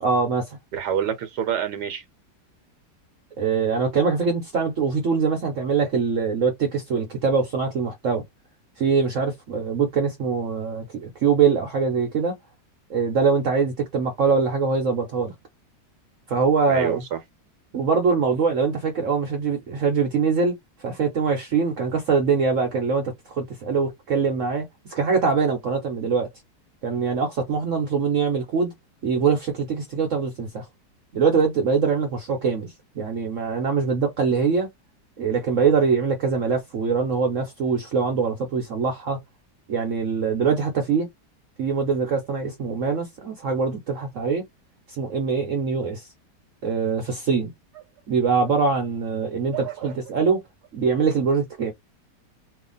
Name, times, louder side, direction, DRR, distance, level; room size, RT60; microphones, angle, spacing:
voice 1, 0.0-0.6 3.4-8.2 8.8-12.4 12.9-15.3 16.3-17.0 17.7-26.3 26.8-28.7 29.0-30.7 31.1-34.7 35.2-39.2 39.7-41.1 41.6-44.5 44.9-46.1 46.6-47.5 48.1-50.4 50.7-51.7, right 5 dB, 55° right, 1.0 m, -23 dB
voice 2, 0.7-2.0 16.7-17.2 49.5-49.9, right 9 dB, 70° right, 1.2 m, -27 dB
2.8 x 2.5 x 3.8 m
omnidirectional pair, 1.9 m